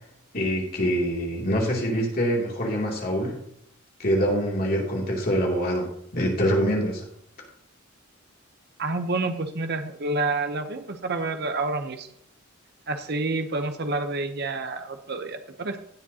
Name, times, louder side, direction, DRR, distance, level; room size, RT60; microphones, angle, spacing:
voice 1, 0.3-3.4 4.0-5.9 6.1-7.0, equal, 45° left, -1 dB, 2.8 m, -25 dB
voice 2, 8.8-12.1 12.9-15.8, right 3 dB, 50° right, 7 dB, 0.8 m, -28 dB
17.0 x 7.3 x 2.9 m, 0.71 s
head